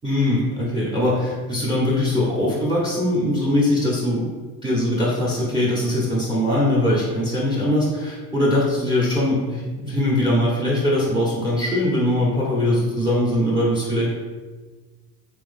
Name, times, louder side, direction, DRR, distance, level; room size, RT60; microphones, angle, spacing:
voice 1, 0.0-4.3 4.6-14.1, left 1 dB, 10° right, -6 dB, 1.1 m, -21 dB
3.3 x 3.1 x 3.6 m, 1.3 s
hypercardioid pair, 70°, 48 cm